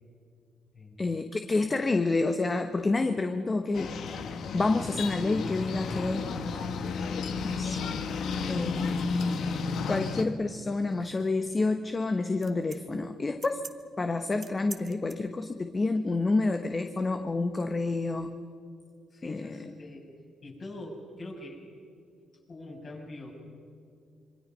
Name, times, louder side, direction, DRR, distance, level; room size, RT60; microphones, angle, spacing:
voice 1, 1.0-3.9 4.5-6.4 7.4-7.9 8.5-9.0 9.8-13.6 14.0-18.3 19.2-19.7, left 3 dB, 30° left, 7 dB, 1.1 m, -28 dB
sound 1, 3.7-10.2, left 4 dB, 70° left, 1.4 m, -32 dB
sound 2, 8.9-15.1, right 4 dB, 30° right, 1.2 m, -49 dB
voice 2, 19.1-20.1 20.4-21.6 22.5-23.3, left 2 dB, 45° left, -2 dB, 7.2 m, -43 dB
26.5 x 24.0 x 5.5 m, 2.3 s
cardioid pair, 90°, 0 cm